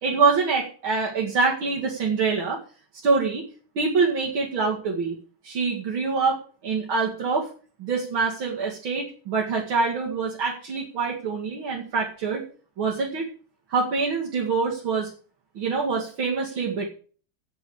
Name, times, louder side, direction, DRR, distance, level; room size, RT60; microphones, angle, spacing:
voice 1, 0.0-2.6 3.0-3.4 3.8-5.2 5.4-7.5 7.8-12.4 12.8-13.3 13.7-15.1 15.5-16.9, right 4 dB, 75° right, -3 dB, 3.1 m, -25 dB
9.0 x 8.4 x 8.8 m, 0.41 s
omnidirectional pair, 2.3 m